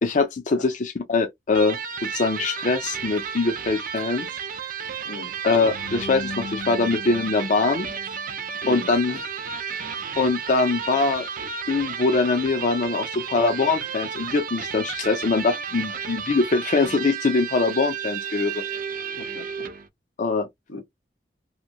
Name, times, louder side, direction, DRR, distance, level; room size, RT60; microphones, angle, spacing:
voice 1, 0.0-4.3 5.4-7.9 8.7-9.2 9.6-9.7 10.2-18.6 20.2-20.5, left 3 dB, 45° left, 0.5 m, -23 dB
Electric guitar, 1.5-19.9, right 6 dB, 50° right, 0.5 m, -32 dB
voice 2, 5.0-5.4 8.6-8.9 19.2-19.7 20.7-20.8, left 2 dB, 90° left, 1.1 m, -38 dB
sound 1, 5.4-8.6, left 4 dB, 65° left, 0.8 m, -39 dB
2.9 x 2.6 x 2.6 m
head